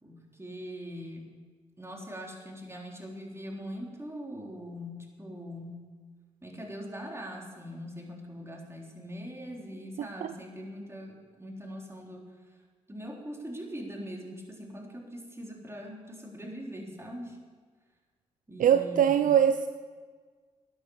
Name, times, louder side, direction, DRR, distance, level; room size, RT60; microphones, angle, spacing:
voice 1, 0.0-1.3 1.8-5.8 6.4-12.3 12.9-17.4 18.5-19.3, equal, 15° right, 0 dB, 3.6 m, -42 dB
voice 2, 18.6-19.7, right 9 dB, 55° right, 11 dB, 0.5 m, -22 dB
12.0 x 9.7 x 7.1 m, 1.5 s
hypercardioid pair, 40°, 16 cm